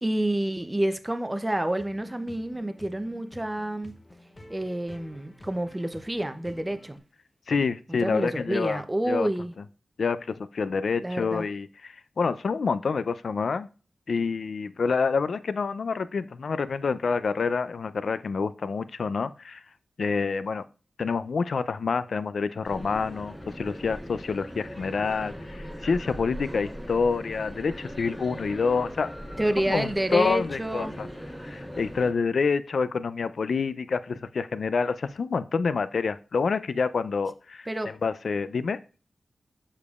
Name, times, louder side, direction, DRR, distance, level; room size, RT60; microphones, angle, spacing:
voice 1, 0.0-3.9 4.5-7.0 7.9-9.5 11.0-11.5 29.4-30.9 37.7-37.9, right 1 dB, 15° right, 0.5 m, -29 dB
sound 1, 1.8-7.0, left 1 dB, 25° left, 0.9 m, -49 dB
voice 2, 7.5-8.8 9.1-9.3 10.0-13.7 14.1-19.6 20.0-20.6 21.0-29.1 29.7-31.1 31.4-37.7 38.0-38.8, left 5 dB, 70° left, 0.4 m, -27 dB
sound 2, 22.6-32.1, equal, 5° left, 1.9 m, -40 dB
7.1 x 6.6 x 2.4 m
wide cardioid pair, 145°, 0 cm